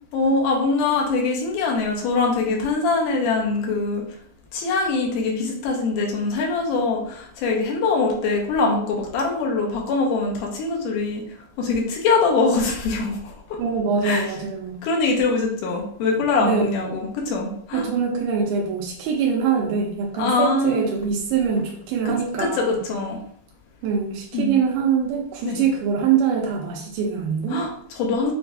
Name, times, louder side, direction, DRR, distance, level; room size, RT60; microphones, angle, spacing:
voice 1, 0.1-4.0 4.5-13.3 14.0-14.3 14.8-17.9 20.2-20.8 22.1-22.2 22.4-23.2 24.3-24.6 25.4-25.6 27.5-28.3, left 3 dB, 85° left, -1 dB, 2.4 m, -23 dB
voice 2, 13.6-14.8 16.4-16.7 17.7-22.8 23.8-27.6, right 6 dB, 85° right, -2 dB, 2.3 m, -23 dB
6.8 x 2.3 x 2.6 m, 0.64 s
omnidirectional pair, 3.7 m